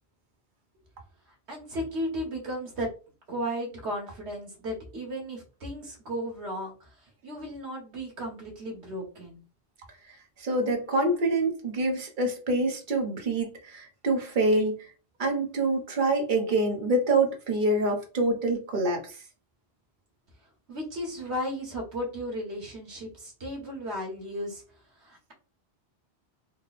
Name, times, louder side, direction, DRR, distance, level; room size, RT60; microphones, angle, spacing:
voice 1, 1.5-2.9 3.3-6.9 7.2-9.4 20.7-24.6 25.0-25.3, equal, 90° right, -1 dB, 1.8 m, -35 dB
voice 2, 10.1-14.9 15.2-19.2, right 2 dB, 50° right, 2 dB, 1.1 m, -26 dB
3.8 x 2.3 x 4.0 m, 0.35 s
omnidirectional pair, 1.1 m